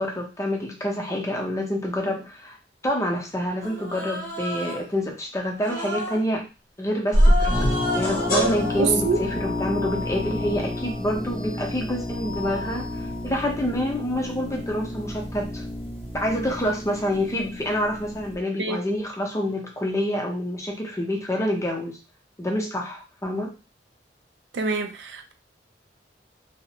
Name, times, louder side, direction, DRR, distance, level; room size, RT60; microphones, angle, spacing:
voice 1, 0.0-2.6 2.8-6.5 6.8-15.6 16.1-22.0 22.4-23.5, left 1 dB, 15° left, 0.6 m, -27 dB
Human voice, 3.6-4.9 5.6-6.3 7.1-8.8, left 1 dB, 50° right, 0.9 m, -32 dB
sound 1, 7.1-13.3, equal, 55° left, 0.6 m, -26 dB
sound 2, 7.5-18.4, left 1 dB, 20° right, 0.7 m, -32 dB
voice 2, 8.8-9.2 18.6-18.8 24.5-25.3, right 5 dB, 75° right, 0.4 m, -25 dB
2.4 x 2.0 x 2.8 m
head